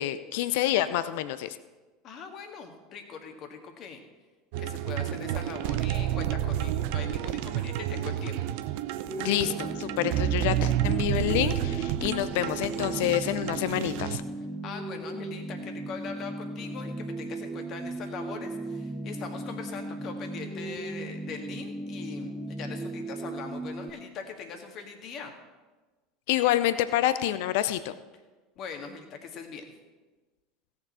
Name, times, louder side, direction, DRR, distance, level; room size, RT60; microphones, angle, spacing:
voice 1, 0.0-1.6 9.2-14.2 26.3-27.9, left 13 dB, 65° left, 13 dB, 0.5 m, -27 dB
voice 2, 2.0-4.0 4.6-8.4 14.6-25.3 28.6-29.6, left 5 dB, 45° left, 5 dB, 1.8 m, -41 dB
sound 1, 4.5-14.2, right 12 dB, 65° right, 0.5 m, -30 dB
sound 2, 9.1-23.9, right 2 dB, 10° right, 1.0 m, -37 dB
16.5 x 7.0 x 4.3 m, 1.2 s
hypercardioid pair, 75°, 0 cm